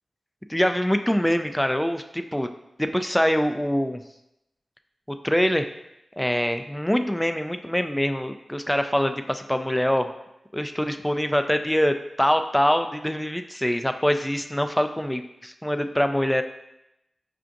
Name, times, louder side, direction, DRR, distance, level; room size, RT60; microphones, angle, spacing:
voice 1, 0.5-2.5 2.8-4.0 5.1-5.7 6.2-10.1 10.5-16.4, equal, 5° left, 7 dB, 0.3 m, -24 dB
5.7 x 2.5 x 2.5 m, 0.86 s
cardioid pair, 45°, 0 cm